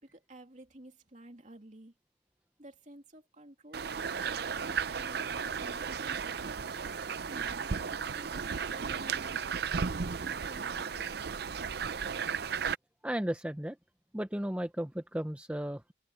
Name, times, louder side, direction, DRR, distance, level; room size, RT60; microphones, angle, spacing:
voice 1, 0.0-1.9 2.6-9.5 10.0-11.0, right 1 dB, 40° right, 2.9 m, -53 dB
sound 1, 3.7-12.8, right 6 dB, 55° right, 0.6 m, -34 dB
voice 2, 13.0-13.8 14.1-15.9, equal, 5° right, 0.6 m, -34 dB
head